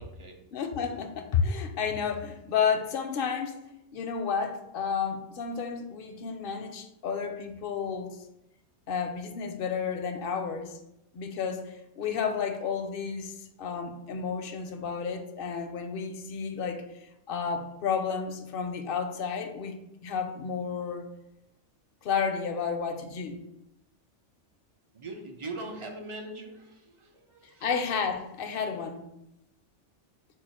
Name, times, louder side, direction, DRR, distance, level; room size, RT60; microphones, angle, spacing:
voice 1, 0.0-0.4 24.9-27.7, right 2 dB, 45° right, 2 dB, 0.4 m, -41 dB
voice 2, 0.5-3.6 3.9-8.2 8.9-10.8 11.1-21.1 22.0-23.4 27.6-29.0, left 6 dB, 60° left, 6 dB, 0.6 m, -31 dB
4.5 x 2.6 x 4.1 m, 0.87 s
omnidirectional pair, 1.3 m